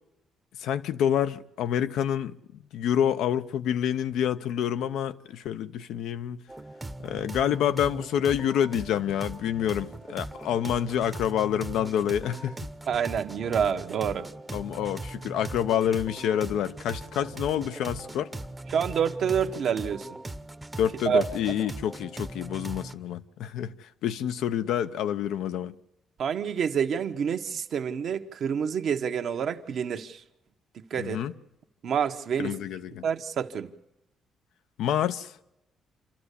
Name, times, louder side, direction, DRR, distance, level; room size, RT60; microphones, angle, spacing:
voice 1, 0.6-2.4 2.7-6.4 7.0-12.6 14.5-18.3 20.8-25.8 31.0-31.3 32.4-33.1 34.8-35.5, left 10 dB, 85° left, 0.8 m, -28 dB
sound 1, 6.5-22.9, right 2 dB, 15° right, 0.9 m, -40 dB
voice 2, 12.9-14.3 18.7-20.1 21.0-21.7 26.2-30.2 30.9-31.2 31.8-32.6 33.0-33.7, right 7 dB, 65° right, 1.2 m, -28 dB
27.5 x 12.5 x 8.4 m
cardioid pair, 90°, 0 cm